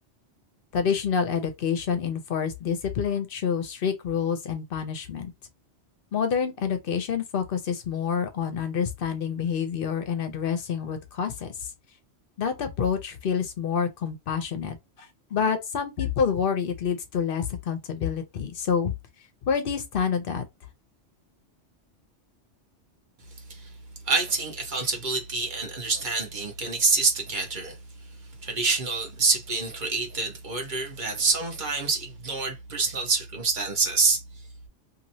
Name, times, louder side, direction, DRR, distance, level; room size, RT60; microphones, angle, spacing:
voice 1, 0.7-5.3 6.1-11.5 12.4-14.8 15.3-18.9 19.5-20.4, left 7 dB, 55° left, 0.7 m, -27 dB
voice 2, 24.1-27.8 28.4-34.2, right 4 dB, 45° right, 1.0 m, -26 dB
2.9 x 2.7 x 2.7 m
omnidirectional pair, 1.2 m